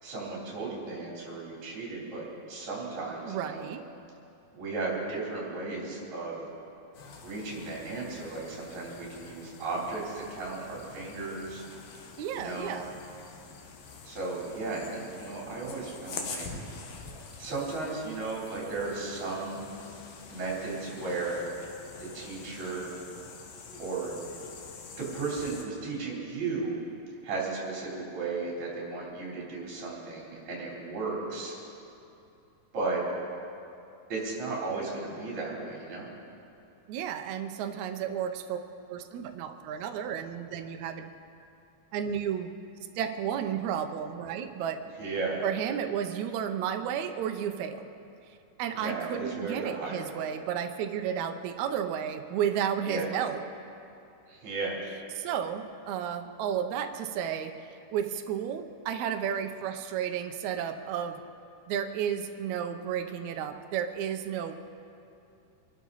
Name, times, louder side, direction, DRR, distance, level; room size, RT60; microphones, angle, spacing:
voice 1, 0.0-3.8 4.5-6.4 7.2-11.6 12.3-12.9 14.0-16.5 17.4-19.6 20.3-21.5 22.0-23.0 23.8-24.2 25.0-26.8 27.2-31.6 32.7-33.0 34.1-36.1 45.0-45.4 48.7-50.2 52.8-53.1 54.3-54.8, right 3 dB, 50° right, -4 dB, 4.8 m, -35 dB
voice 2, 3.3-3.8 12.2-12.9 36.9-38.6 38.9-41.1 41.9-42.5 42.9-44.8 45.4-47.9 48.6-53.4 55.2-57.5 57.9-61.2 61.7-64.5, right 9 dB, 80° right, 6 dB, 1.6 m, -32 dB
sound 1, 6.9-25.6, left 4 dB, 80° left, 3.3 m, -46 dB
25.5 x 12.5 x 4.1 m, 2.7 s
omnidirectional pair, 4.4 m